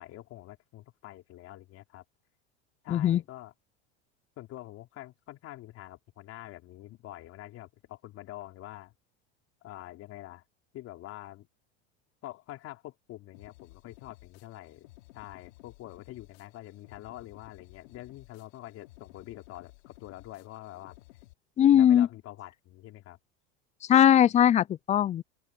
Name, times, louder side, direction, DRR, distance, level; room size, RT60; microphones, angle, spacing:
voice 1, 0.0-2.0 2.8-3.5 4.4-8.9 9.6-10.4 10.7-11.5 12.2-21.0 21.6-23.2, left 15 dB, 50° left, 3.7 m, -46 dB
voice 2, 2.9-3.2 21.6-22.1 23.9-25.2, left 10 dB, 25° left, 0.4 m, -20 dB
sound 1, 13.3-21.3, left 20 dB, 80° left, 3.2 m, -55 dB
supercardioid pair, 115°, 31 cm